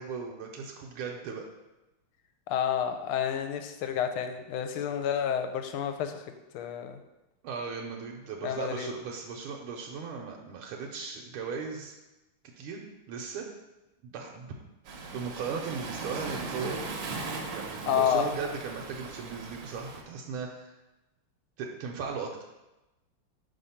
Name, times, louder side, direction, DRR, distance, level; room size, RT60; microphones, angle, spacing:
voice 1, 0.0-1.4 7.4-12.0 12.6-12.8 13.1-13.4 14.0-14.5 15.1-16.8 17.5-20.7 21.6-22.4, right 5 dB, 80° right, 0 dB, 1.5 m, -37 dB
voice 2, 2.5-6.3 6.5-7.0 8.4-8.9 17.9-18.3, left 8 dB, 80° left, 7 dB, 1.4 m, -29 dB
Waves surf, 14.8-20.0, right 3 dB, 65° right, 1.2 m, -38 dB
5.0 x 3.5 x 5.6 m, 1.0 s
omnidirectional pair, 2.4 m